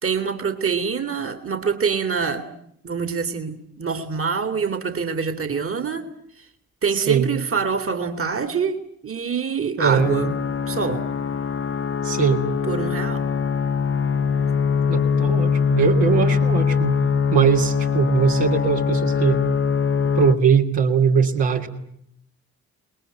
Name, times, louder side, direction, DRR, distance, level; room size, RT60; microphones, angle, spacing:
voice 1, 0.0-2.5 2.8-6.1 6.4-6.5 6.8-10.4 10.7-11.0 12.7-13.3, right 6 dB, 30° right, 8 dB, 2.4 m, -25 dB
voice 2, 6.9-7.3 9.8-10.1 12.0-12.4 14.9-17.0 17.3-19.4 20.2-21.7, right 7 dB, 60° right, 1 dB, 2.8 m, -20 dB
sound 1, 10.0-20.4, left 6 dB, 30° left, 1.2 m, -22 dB
29.0 x 20.5 x 9.2 m, 0.73 s
figure-of-eight pair, 40°, 45 cm